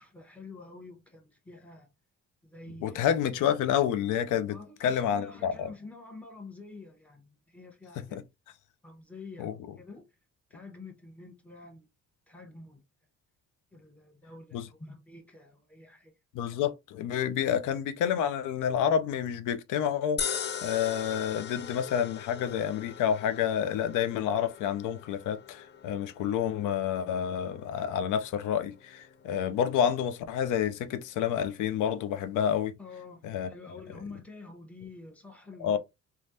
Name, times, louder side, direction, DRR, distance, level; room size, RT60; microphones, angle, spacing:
voice 1, 0.0-1.9 2.4-3.1 4.5-8.2 8.8-10.1 10.5-11.9 12.3-12.8 13.7-16.1 32.8-35.8, left 3 dB, 5° left, 1.1 m, -48 dB
voice 2, 2.8-5.7 8.0-8.2 9.4-9.5 14.5-14.7 16.3-32.7 33.2-33.5 35.6-35.8, left 9 dB, 85° left, 0.5 m, -29 dB
sound 1, 20.2-32.5, left 8 dB, 35° left, 0.4 m, -42 dB
3.2 x 2.3 x 2.6 m
cardioid pair, 90°, 30 cm